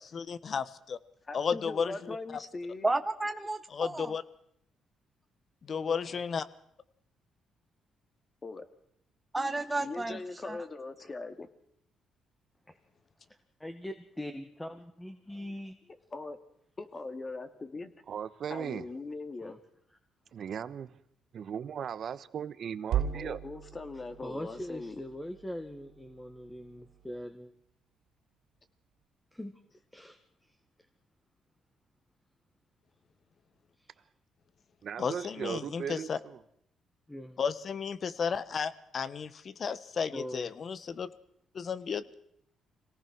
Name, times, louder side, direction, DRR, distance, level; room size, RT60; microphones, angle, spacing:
voice 1, 0.1-1.0 1.3-2.2 3.7-4.2 5.7-6.5 35.0-36.2 37.4-41.1 41.5-42.1, left 6 dB, 50° left, 1.3 m, -33 dB
voice 2, 1.3-2.9 8.4-8.6 9.8-11.5 16.1-16.4 16.8-17.9 18.5-19.5 23.1-25.0, left 3 dB, 30° left, 2.3 m, -40 dB
voice 3, 2.8-4.1 9.3-10.2 10.4-10.6, right 2 dB, 15° right, 0.9 m, -32 dB
voice 4, 5.7-6.2 12.7-12.8 13.6-15.8 19.4-19.6 24.2-27.5 29.3-29.5 29.9-30.6 33.8-34.0 37.1-37.4 40.1-40.5, left 1 dB, 10° left, 1.8 m, -42 dB
voice 5, 18.1-18.9 20.3-20.9 21.3-23.4 34.8-36.4, right 8 dB, 60° right, 1.1 m, -37 dB
sound 1, 22.9-27.2, right 9 dB, 90° right, 3.7 m, -38 dB
26.0 x 18.0 x 6.2 m
cardioid pair, 90°, 0 cm